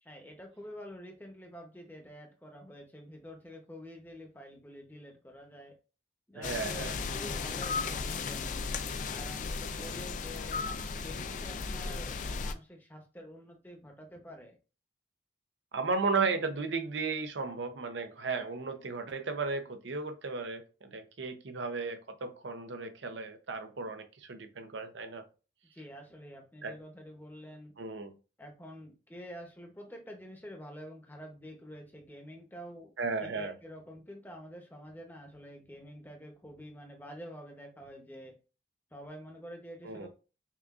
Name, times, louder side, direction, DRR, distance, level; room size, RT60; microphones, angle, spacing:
voice 1, 0.0-5.7 6.3-8.5 9.1-10.7 11.0-14.6 25.7-27.7 28.4-32.9 33.2-38.3 38.9-40.1, equal, 10° left, 0.7 m, -48 dB
voice 2, 6.3-7.0 15.7-25.2 26.6-26.8 27.8-28.1 33.0-33.5 39.8-40.1, right 4 dB, 85° right, 0.7 m, -35 dB
sound 1, 6.4-12.5, left 4 dB, 45° left, 0.3 m, -35 dB
5.6 x 2.4 x 2.4 m
head